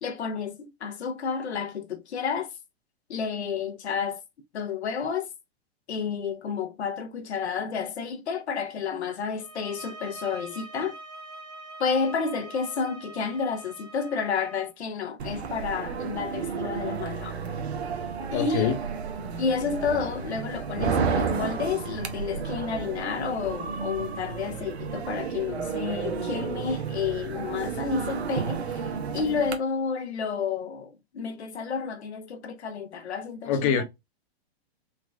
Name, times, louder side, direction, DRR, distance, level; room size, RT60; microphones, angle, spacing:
voice 1, 0.0-2.5 3.1-4.2 4.5-5.3 5.9-11.0 11.8-17.4 18.3-18.7 19.4-33.7, left 6 dB, 90° left, 0.8 m, -30 dB
sound 1, 9.3-14.7, right 2 dB, 15° right, 0.6 m, -44 dB
sound 2, 15.2-29.5, right 6 dB, 80° right, 0.9 m, -32 dB
voice 2, 18.3-18.8 33.5-33.8, left 7 dB, 35° left, 0.8 m, -24 dB
3.8 x 2.3 x 3.1 m
hypercardioid pair, 130°, 32 cm